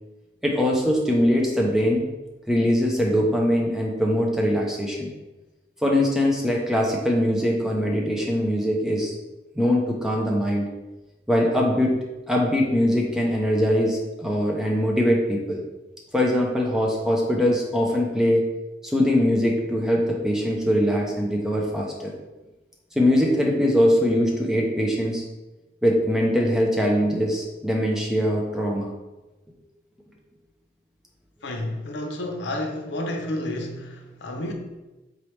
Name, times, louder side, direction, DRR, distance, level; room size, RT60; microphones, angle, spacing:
voice 1, 0.4-2.0 2.5-5.1 5.8-9.1 9.6-10.7 11.3-11.9 12.3-15.6 16.1-18.4 18.8-22.1 23.0-25.2 25.8-28.9, equal, 5° right, -2 dB, 0.5 m, -22 dB
voice 2, 31.4-34.5, left 1 dB, 85° left, 3 dB, 0.6 m, -30 dB
3.9 x 3.2 x 3.1 m, 1.1 s
head